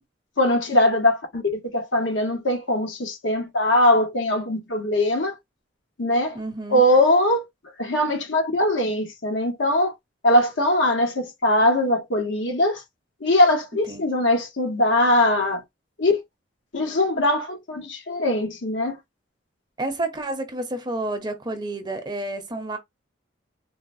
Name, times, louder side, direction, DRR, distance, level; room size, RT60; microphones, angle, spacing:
voice 1, 0.4-1.4 1.7-5.3 6.0-6.4 6.7-7.4 7.8-9.9 10.2-12.8 13.2-15.6 16.0-16.2 16.7-19.0, left 1 dB, 80° left, 1.1 m, -21 dB
voice 2, 6.3-6.8 13.9-14.1 19.8-22.8, right 2 dB, 25° right, 0.6 m, -30 dB
3.9 x 2.1 x 2.6 m
head